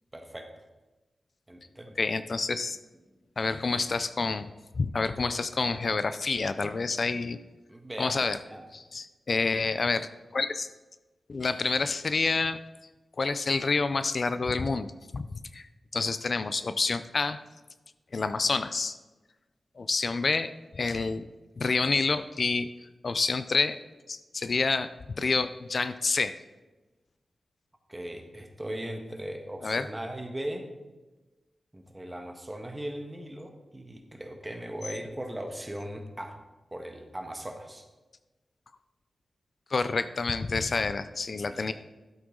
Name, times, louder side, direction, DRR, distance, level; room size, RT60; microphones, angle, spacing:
voice 1, 0.1-0.6 1.5-2.0 7.7-8.6 27.9-30.7 31.7-36.4 36.7-37.9 41.4-41.7, right 1 dB, 20° right, 4 dB, 1.5 m, -38 dB
voice 2, 2.0-2.8 3.4-4.5 4.8-7.4 8.0-8.4 8.7-10.7 11.3-12.6 13.2-14.9 15.1-15.2 15.5-15.7 15.9-17.4 18.1-19.0 19.8-21.2 21.6-22.7 23.0-23.8 24.1-24.9 25.2-26.3 29.6-29.8 39.7-41.7, left 4 dB, 60° left, 12 dB, 0.4 m, -28 dB
12.0 x 7.8 x 3.8 m, 1.2 s
cardioid pair, 60°, 0 cm